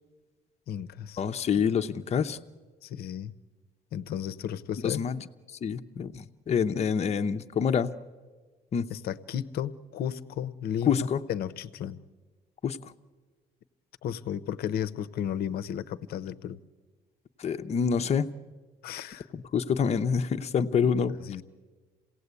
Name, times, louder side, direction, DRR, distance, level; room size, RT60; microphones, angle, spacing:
voice 1, 0.7-1.2 2.8-3.3 3.9-5.0 8.9-12.0 14.0-16.6 18.8-19.3 20.8-21.4, left 9 dB, 65° left, 13 dB, 0.8 m, -34 dB
voice 2, 1.2-2.4 4.8-5.2 5.6-7.9 8.7-8.9 10.9-11.2 12.6-12.9 17.4-18.3 19.3-21.2, left 6 dB, 40° left, 8 dB, 0.8 m, -27 dB
27.5 x 17.5 x 8.3 m, 1.4 s
cardioid pair, 110°, 17 cm